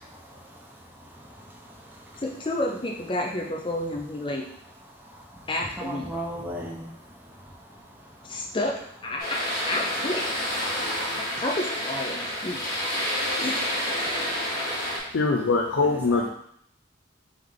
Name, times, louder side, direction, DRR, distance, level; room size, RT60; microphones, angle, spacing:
voice 1, 0.0-2.2 4.9-8.6 10.7-11.4 13.0-13.4 14.0-15.2 15.8-16.3, equal, 10° right, -2 dB, 0.7 m, -41 dB
voice 2, 2.2-4.5 5.5-6.1 8.2-8.7 9.0-10.3 11.1-12.7 13.4-13.7, left 1 dB, 25° left, -1 dB, 0.6 m, -30 dB
sound 1, 9.2-15.0, equal, 50° left, 1.4 m, -29 dB
voice 3, 15.1-16.3, left 3 dB, 75° left, 0 dB, 0.5 m, -22 dB
3.5 x 3.4 x 3.6 m, 0.71 s
head